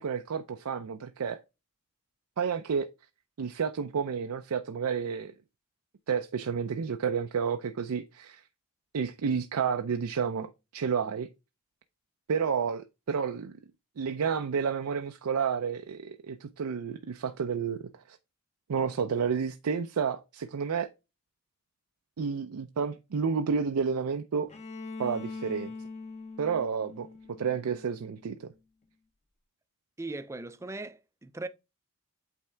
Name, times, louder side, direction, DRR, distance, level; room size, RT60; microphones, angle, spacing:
voice 1, 0.0-1.4 2.4-2.9 3.4-5.3 6.1-8.4 8.9-11.3 12.3-13.5 14.0-17.8 18.1-18.2 18.7-20.9 22.2-24.5 25.0-25.7 26.4-28.5, right 6 dB, 85° right, 0.5 m, -30 dB
Bowed string instrument, 24.5-28.4, left 3 dB, 30° left, 0.7 m, -42 dB
voice 2, 30.0-31.5, right 2 dB, 15° right, 0.3 m, -39 dB
8.4 x 3.5 x 3.3 m
head